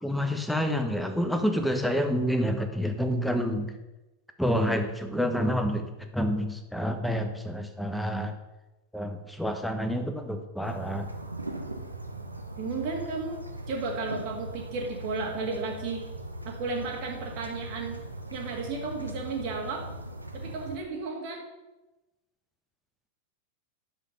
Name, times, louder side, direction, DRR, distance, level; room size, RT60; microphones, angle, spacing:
voice 1, 0.0-3.7 4.4-8.3 8.9-11.1, equal, ahead, 6 dB, 1.2 m, -28 dB
sound 1, 10.6-20.8, right 1 dB, 85° right, 1.0 m, -39 dB
voice 2, 12.6-16.0 16.5-18.0 18.3-19.8 20.3-21.4, right 4 dB, 45° right, 0 dB, 1.9 m, -33 dB
10.0 x 7.3 x 5.4 m, 1.0 s
figure-of-eight pair, 90°, 0 cm